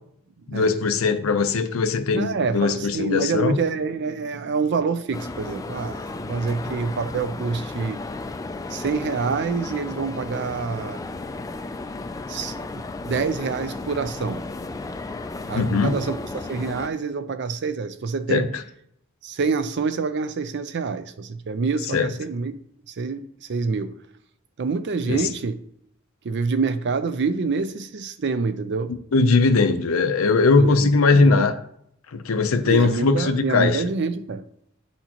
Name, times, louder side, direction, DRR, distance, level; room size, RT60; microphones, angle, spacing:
voice 1, 0.5-3.6 15.5-16.0 18.3-18.6 21.9-22.1 25.1-25.2 29.1-31.6 32.1-33.8, left 4 dB, 80° left, 0.6 m, -20 dB
voice 2, 2.1-8.0 8.7-11.0 12.3-14.4 15.5-18.5 19.2-22.6 22.9-23.9 24.6-25.6 26.2-28.9 30.6-31.5 32.6-34.4, right 4 dB, 55° right, 0.5 m, -27 dB
sound 1, 5.1-16.9, left 3 dB, 15° left, 0.3 m, -34 dB
9.2 x 4.2 x 2.9 m
head